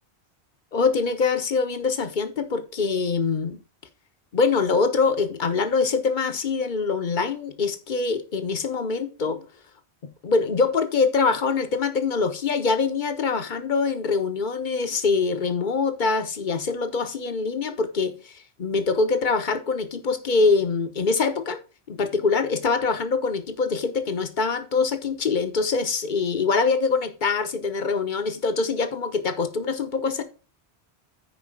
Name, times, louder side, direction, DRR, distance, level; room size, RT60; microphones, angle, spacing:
voice 1, 0.7-3.6 4.3-9.5 10.2-21.6 21.9-30.2, left 4 dB, 50° left, 1.2 m, -24 dB
9.7 x 5.0 x 5.0 m
omnidirectional pair, 1.1 m